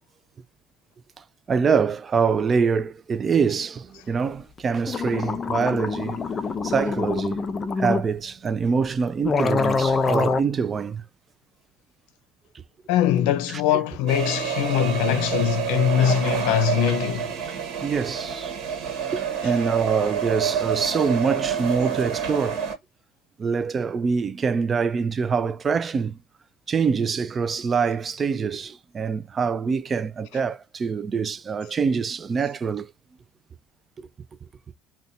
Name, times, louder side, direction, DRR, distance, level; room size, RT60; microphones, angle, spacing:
voice 1, 1.5-6.2 6.6-7.4 7.7-11.0 13.5-13.8 17.8-18.5 19.1-22.6 23.4-26.2 26.7-32.9 34.0-34.1, right 5 dB, 35° right, 0.3 m, -25 dB
sound 1, 4.6-4.7 4.9-8.1 8.8-8.9 9.2-10.4, left 4 dB, 30° left, 0.5 m, -25 dB
voice 2, 12.9-17.3, left 10 dB, 80° left, 0.5 m, -22 dB
sound 2, 14.1-22.7, right 8 dB, 65° right, 1.1 m, -28 dB
2.6 x 2.2 x 3.9 m
supercardioid pair, 95°, 0 cm